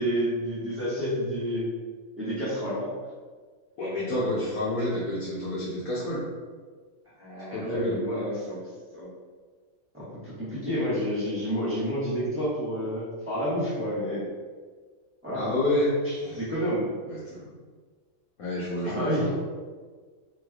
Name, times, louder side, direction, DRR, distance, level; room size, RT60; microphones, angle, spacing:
voice 1, 0.0-1.7 2.2-2.9 7.2-8.7 8.9-9.1 9.9-14.2 15.2-15.5 16.0-16.8 18.8-19.3, equal, 10° right, -12 dB, 1.1 m, -29 dB
voice 2, 3.8-6.2 7.5-8.0 15.3-16.4 17.1-17.5 18.4-19.3, left 1 dB, 80° left, -8 dB, 1.2 m, -29 dB
3.2 x 3.2 x 2.3 m, 1.5 s
omnidirectional pair, 1.5 m